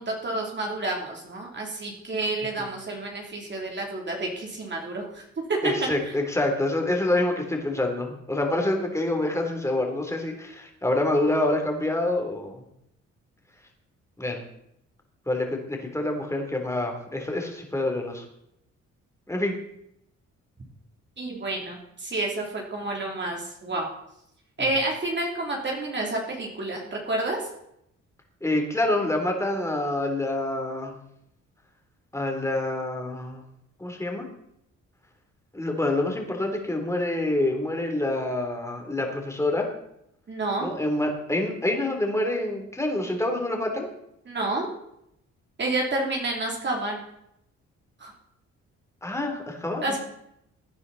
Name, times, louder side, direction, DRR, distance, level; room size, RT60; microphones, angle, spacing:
voice 1, 0.0-5.2 5.5-5.9 21.2-23.9 24.6-27.5 40.3-40.7 44.3-44.7 45.6-47.0 48.0-48.1 49.8-50.0, right 2 dB, 40° right, -1 dB, 3.2 m, -29 dB
voice 2, 5.6-12.6 14.2-14.4 15.3-18.2 19.3-19.5 24.6-24.7 28.4-30.9 32.1-33.4 33.8-34.3 35.5-39.7 40.6-43.9 49.0-50.0, left 1 dB, 10° left, 3 dB, 3.4 m, -27 dB
16.5 x 9.7 x 4.1 m, 0.77 s
cardioid pair, 85°, 29 cm